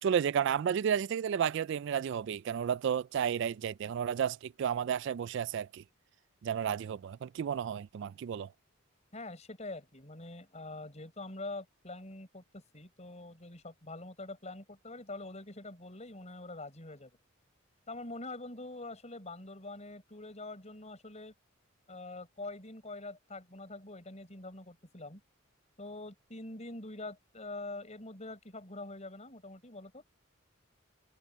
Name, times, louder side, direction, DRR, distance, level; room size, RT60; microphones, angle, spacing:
voice 1, 0.0-5.8 6.4-8.5, right 8 dB, 60° right, 0.3 m, -32 dB
voice 2, 9.1-17.1 17.9-21.3 21.9-25.2 25.8-30.0, left 2 dB, 35° left, 5.9 m, -45 dB
head